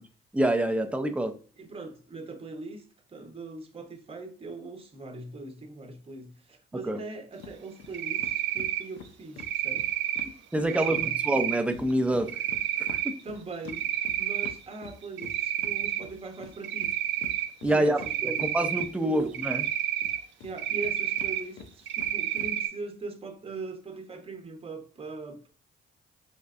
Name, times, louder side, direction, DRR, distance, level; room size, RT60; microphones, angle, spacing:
voice 1, 0.3-1.3 6.9-7.0 10.5-12.3 12.9-13.1 17.6-19.6, right 1 dB, 5° right, 6 dB, 0.5 m, -26 dB
voice 2, 1.6-9.9 10.3-11.1 13.2-13.9 14.2-17.0 17.6-18.5 19.0-19.4 20.4-25.5, right 3 dB, 30° right, 4 dB, 0.9 m, -41 dB
sound 1, 7.4-7.5 7.8-7.9 8.2-11.1 11.3-19.7 20.0-22.5, left 6 dB, 85° left, 0.6 m, -46 dB
Cricket, 7.9-8.8 9.4-10.2 10.7-11.6 12.3-13.1 13.5-14.5 14.9-16.0 16.6-17.5 18.0-18.8 19.3-20.2 20.6-21.4 21.9-22.7, right 11 dB, 70° right, 0.6 m, -29 dB
4.4 x 3.2 x 2.5 m, 0.43 s
cardioid pair, 90°, 20 cm